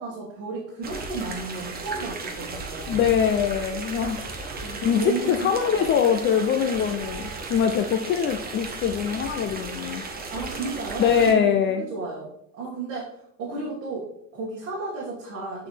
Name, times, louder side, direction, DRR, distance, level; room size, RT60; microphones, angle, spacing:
voice 1, 0.0-3.0 4.5-5.9 10.3-15.7, right 3 dB, 40° right, -5 dB, 2.0 m, -34 dB
sound 1, 0.8-11.3, right 3 dB, 25° right, 1.0 m, -35 dB
voice 2, 2.9-4.4 4.8-10.0 11.0-11.8, left 7 dB, 35° left, 6 dB, 0.4 m, -23 dB
8.5 x 4.1 x 3.3 m, 0.74 s
cardioid pair, 135°, 35 cm